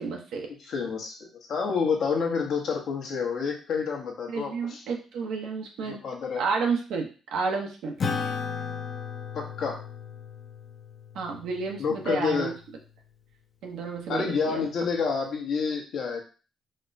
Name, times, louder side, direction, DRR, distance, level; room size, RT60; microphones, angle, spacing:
voice 1, 0.0-0.5 4.3-6.0 6.4-7.9 11.1-12.5 13.6-14.7, right 4 dB, 85° right, 2 dB, 0.7 m, -31 dB
voice 2, 0.7-4.8 5.8-6.4 9.3-9.8 11.8-12.5 14.1-16.2, left 5 dB, 70° left, 0 dB, 0.9 m, -29 dB
Acoustic guitar / Strum, 8.0-12.8, left 6 dB, 50° left, 0.6 m, -35 dB
4.2 x 2.1 x 2.6 m, 0.35 s
cardioid pair, 90°, 0 cm